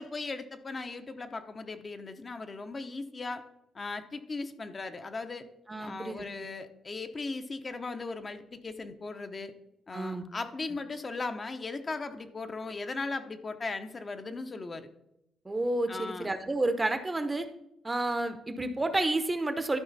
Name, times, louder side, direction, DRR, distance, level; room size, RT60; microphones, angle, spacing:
voice 1, 0.0-3.4 3.7-5.5 5.8-9.5 9.9-14.9 15.9-16.3, left 3 dB, 35° left, 8 dB, 0.7 m, -38 dB
voice 2, 5.7-6.2 9.9-10.3 15.4-17.5 17.8-19.8, right 2 dB, 20° right, 9 dB, 0.8 m, -30 dB
12.5 x 4.9 x 4.1 m, 0.83 s
cardioid pair, 90°, 0 cm